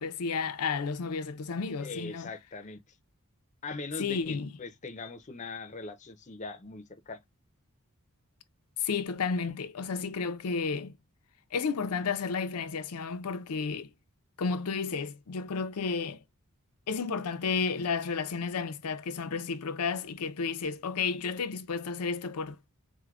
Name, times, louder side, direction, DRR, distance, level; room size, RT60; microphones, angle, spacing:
voice 1, 0.0-2.3 4.0-4.5 8.8-10.9 11.5-13.9 14.4-16.2 16.9-22.6, left 5 dB, 90° left, 0.5 m, -32 dB
voice 2, 1.8-3.0 3.6-7.2, left 3 dB, 30° left, 0.5 m, -41 dB
4.5 x 2.1 x 2.4 m
head